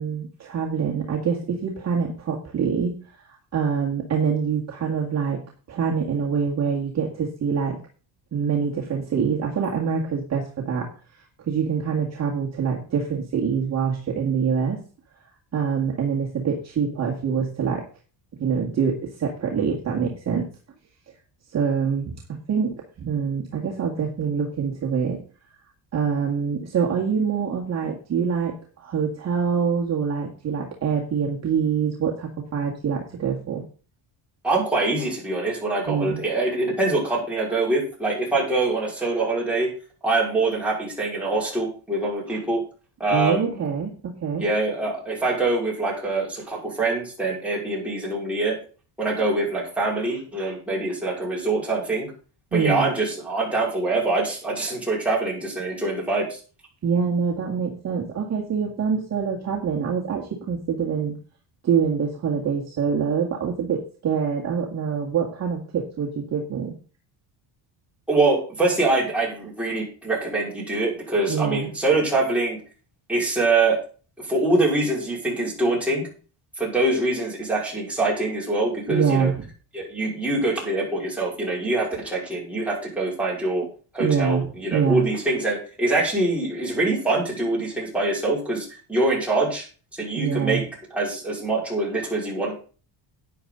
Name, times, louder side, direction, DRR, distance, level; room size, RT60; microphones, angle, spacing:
voice 1, 0.0-2.9 3.2-5.4 5.7-7.8 8.3-10.9 11.4-14.8 15.5-17.8 18.4-20.5 21.5-25.2 25.9-33.6 35.9-36.2 43.1-44.5 52.5-52.9 56.8-61.2 61.6-66.8 71.3-71.7 78.9-79.5 84.0-85.0 90.2-90.6, right 6 dB, 35° right, -2 dB, 1.9 m, -25 dB
voice 2, 34.4-39.7 40.0-42.6 43.0-43.6 44.4-48.6 49.0-52.1 52.5-56.4 68.1-72.6 73.1-73.8 74.2-76.1 76.6-79.3 79.7-83.6 83.9-89.6 89.9-90.6 90.9-92.5, right 2 dB, 5° right, -6 dB, 5.1 m, -24 dB
11.5 x 9.5 x 3.9 m, 0.38 s
cardioid pair, 155°, 47 cm